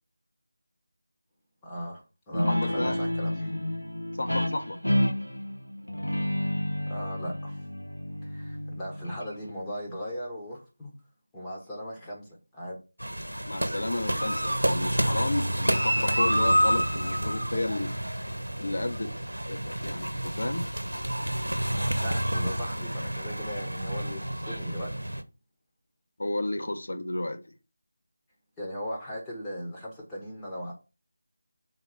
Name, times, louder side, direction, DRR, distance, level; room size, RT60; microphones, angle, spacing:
voice 1, 1.6-3.5 6.9-7.6 8.2-10.9 11.3-12.8 21.7-25.1 28.6-30.7, equal, 10° left, 1.2 m, -37 dB
Guitar, 2.3-9.5, left 1 dB, 85° left, 1.1 m, -30 dB
voice 2, 2.5-3.0 4.2-4.8 13.4-17.9 18.6-19.1 19.5-20.7 26.2-27.4, left 1 dB, 50° left, 1.1 m, -32 dB
sound 1, 13.0-25.2, equal, 80° right, 1.0 m, -29 dB
5.1 x 4.0 x 5.6 m
figure-of-eight pair, 165°, 0 cm